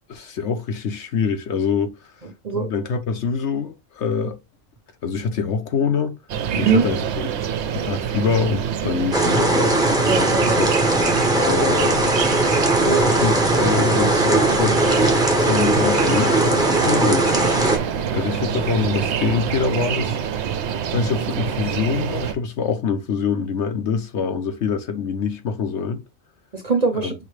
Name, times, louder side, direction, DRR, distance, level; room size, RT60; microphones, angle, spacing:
voice 1, 0.1-1.9 2.5-4.4 5.0-6.2 6.6-7.3 7.7-9.8 10.4-10.8 11.4-12.0 12.8-14.8 15.3-17.3 18.1-20.2 20.8-26.0 26.9-27.1, left 6 dB, 65° left, 1.1 m, -25 dB
voice 2, 2.2-2.7 6.5-6.8 10.0-10.7 12.8-13.0 26.5-27.1, right 5 dB, 40° right, 0.7 m, -22 dB
sound 1, 6.3-22.3, right 8 dB, 65° right, 0.8 m, -26 dB
sound 2, 9.1-17.8, right 1 dB, 5° right, 0.7 m, -19 dB
5.8 x 2.7 x 3.2 m
omnidirectional pair, 1.3 m